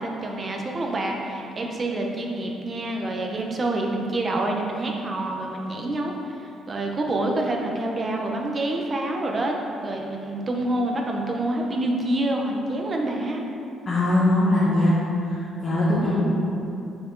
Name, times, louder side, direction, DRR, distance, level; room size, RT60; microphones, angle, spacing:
voice 1, 0.0-9.5 9.8-13.4 16.0-16.2, right 1 dB, 25° right, 1 dB, 0.7 m, -27 dB
voice 2, 13.9-14.9 15.3-16.2, left 1 dB, 30° left, -10 dB, 1.2 m, -21 dB
6.9 x 4.1 x 3.8 m, 2.8 s
cardioid pair, 160°, 0 cm